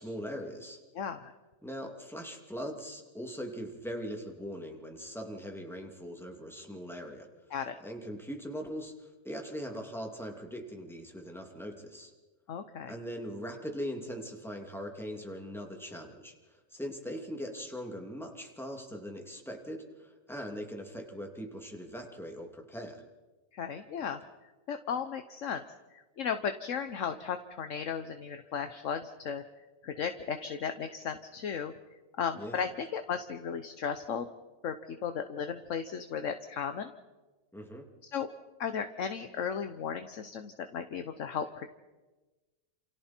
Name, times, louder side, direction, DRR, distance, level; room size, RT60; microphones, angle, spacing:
voice 1, 0.0-0.8 1.6-7.3 7.8-12.1 12.9-23.0 32.4-32.6 37.5-37.9, equal, ahead, 2 dB, 2.7 m, -41 dB
voice 2, 0.9-1.3 7.5-7.7 12.5-12.9 23.5-24.2 24.7-25.6 25.9-29.4 29.8-31.7 32.2-34.3 34.6-36.9 38.1-38.3 38.6-41.7, left 7 dB, 65° left, 8 dB, 1.3 m, -35 dB
28.5 x 28.0 x 4.5 m, 1.2 s
omnidirectional pair, 1.5 m